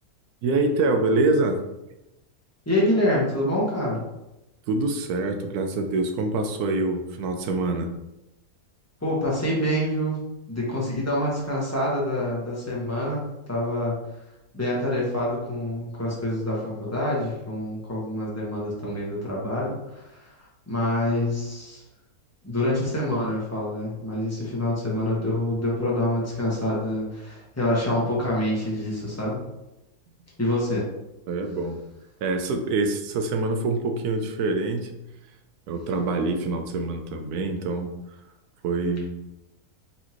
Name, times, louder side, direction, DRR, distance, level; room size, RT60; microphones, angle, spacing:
voice 1, 0.4-1.6 4.7-7.9 31.3-31.8 32.2-34.9 35.7-37.9 38.6-39.1, right 3 dB, 85° right, 6 dB, 1.1 m, -25 dB
voice 2, 2.7-4.0 9.0-10.2 10.5-13.2 13.5-13.9 14.5-20.3 20.7-21.8 22.4-29.4 30.4-30.9, left 1 dB, 10° left, -6 dB, 1.1 m, -26 dB
4.3 x 3.6 x 3.0 m, 0.93 s
omnidirectional pair, 1.6 m